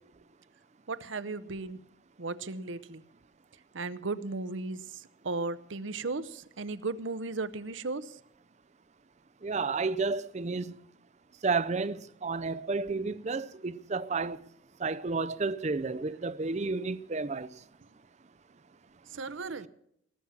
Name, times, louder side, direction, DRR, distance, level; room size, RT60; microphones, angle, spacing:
voice 1, 0.9-1.8 2.2-3.0 3.7-8.2 16.0-16.1 19.1-19.7, right 3 dB, 70° right, 0.8 m, -36 dB
voice 2, 9.4-10.7 11.4-14.5 14.8-17.5, right 4 dB, 35° right, 0.5 m, -31 dB
19.0 x 7.3 x 7.4 m
head